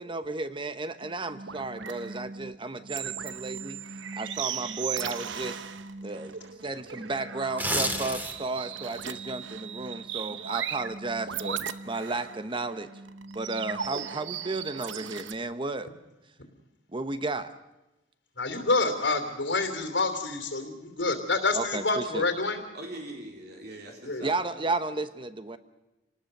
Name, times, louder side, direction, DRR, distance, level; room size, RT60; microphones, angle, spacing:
voice 1, 0.0-3.8 4.2-5.6 6.0-12.9 13.3-15.9 16.9-17.5 21.5-22.3 24.2-25.6, right 3 dB, 25° right, 11 dB, 1.0 m, -33 dB
sound 1, 1.0-15.3, right 7 dB, 80° right, 0.9 m, -37 dB
sound 2, 7.4-8.6 9.0-9.2, right 1 dB, 10° right, 2.1 m, -29 dB
voice 2, 18.4-22.6 24.0-24.3, left 3 dB, 80° left, 5 dB, 2.9 m, -27 dB
voice 3, 22.7-24.5, right 1 dB, 60° right, 1 dB, 3.8 m, -42 dB
27.5 x 19.0 x 6.7 m, 0.99 s
head